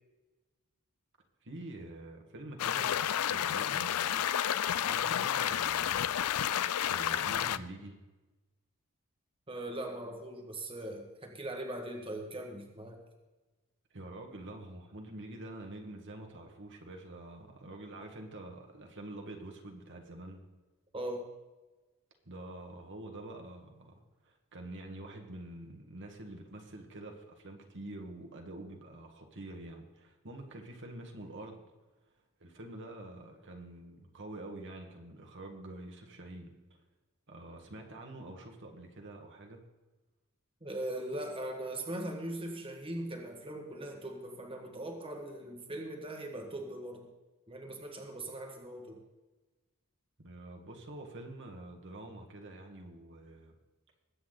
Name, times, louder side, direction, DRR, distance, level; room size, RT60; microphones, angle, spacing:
voice 1, 1.4-4.2 4.5-6.2 6.5-7.9 13.9-20.4 22.2-31.6 32.4-36.5 37.3-39.6 50.2-53.5, right 1 dB, 55° right, 2 dB, 1.7 m, -47 dB
sound 1, 2.6-7.6, left 10 dB, 85° left, 0.5 m, -31 dB
voice 2, 9.5-13.0 20.9-21.3 40.6-47.1 47.5-49.0, right 1 dB, 25° right, 2 dB, 1.6 m, -40 dB
21.5 x 8.5 x 4.0 m, 1.2 s
head